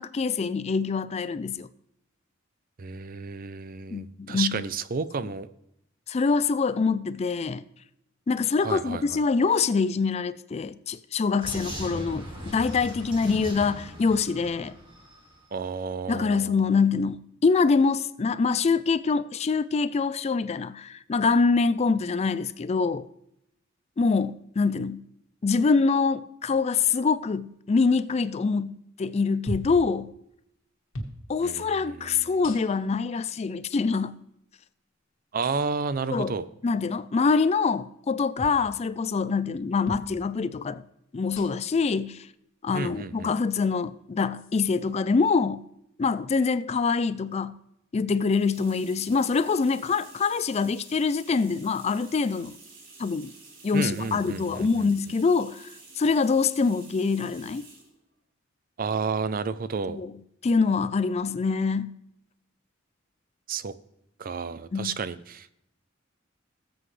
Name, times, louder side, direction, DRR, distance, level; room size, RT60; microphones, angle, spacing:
voice 1, 0.0-1.7 3.9-4.7 6.1-7.6 8.3-14.8 16.1-23.1 24.0-25.0 25.4-30.1 31.3-34.2 36.1-36.4 36.6-40.8 41.1-42.3 42.6-45.6 46.0-47.6 47.9-52.5 53.0-53.3 53.6-55.6 56.0-57.6 59.9-60.1 60.4-62.0 64.7-65.0, left 4 dB, 30° left, 0.4 m, -25 dB
voice 2, 2.8-5.5 8.6-9.2 15.5-16.6 31.4-32.4 35.3-36.5 42.7-43.3 53.7-54.9 58.8-60.0 63.5-63.7 64.2-65.5, right 5 dB, 45° right, 0.5 m, -31 dB
Vehicle, 11.4-15.3, equal, 25° right, 2.4 m, -39 dB
sound 1, 29.5-29.8 30.9-31.2 32.4-32.9 33.9-34.0 35.4-35.6 38.4-38.6 39.9-40.1 41.3-41.7 42.9-43.0 44.3-44.5, equal, 90° left, 1.8 m, -37 dB
sound 2, 48.2-58.0, right 3 dB, 85° right, 3.3 m, -50 dB
18.5 x 7.9 x 3.2 m
head